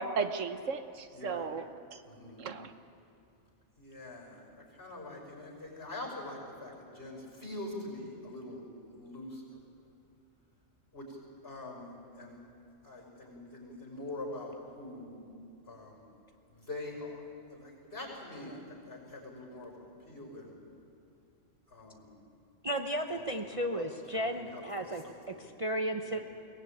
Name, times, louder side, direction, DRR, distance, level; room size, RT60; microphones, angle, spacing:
voice 1, 0.0-1.6 1.9-2.0 2.4-2.7, right 5 dB, 75° right, 9 dB, 1.3 m, -35 dB
voice 2, 1.1-1.5 2.1-2.4 3.8-4.4 4.7-8.7 8.9-9.4 10.9-11.2 11.4-12.4 12.8-15.2 15.7-16.0 16.5-17.2 17.5-20.6 21.7-22.1 23.1-23.8 24.1-24.7 25.0-25.4 26.0-26.2, left 2 dB, 50° left, 0 dB, 5.9 m, -44 dB
voice 3, 22.6-26.2, right 1 dB, 30° right, 3 dB, 0.9 m, -34 dB
23.0 x 18.5 x 8.7 m, 2.7 s
omnidirectional pair, 1.3 m